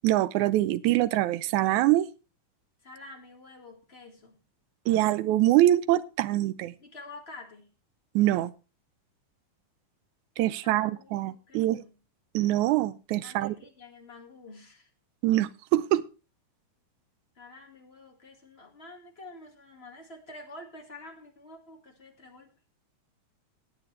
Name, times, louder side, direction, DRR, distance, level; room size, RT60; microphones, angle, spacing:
voice 1, 0.0-2.1 4.9-6.7 8.2-8.5 10.4-11.8 12.3-13.5 15.2-16.0, right 15 dB, 75° right, 15 dB, 1.9 m, -24 dB
voice 2, 2.8-4.4 6.8-7.7 10.6-12.0 13.2-14.9 17.3-22.5, left 2 dB, 25° left, 1 dB, 1.5 m, -48 dB
18.0 x 8.5 x 3.3 m, 0.33 s
omnidirectional pair, 3.8 m